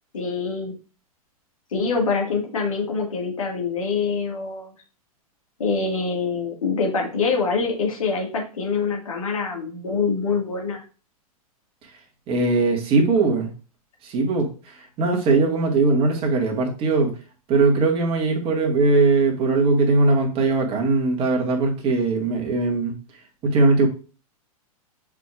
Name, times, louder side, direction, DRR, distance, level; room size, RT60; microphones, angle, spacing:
voice 1, 0.1-0.7 1.7-4.7 5.6-10.8, left 4 dB, 65° left, 0 dB, 2.0 m, -25 dB
voice 2, 12.3-13.5 14.0-14.5 14.8-17.1 17.5-22.9 23.4-23.9, right 3 dB, 30° right, 1 dB, 1.9 m, -20 dB
8.0 x 4.9 x 2.5 m, 0.35 s
figure-of-eight pair, 100°, 19 cm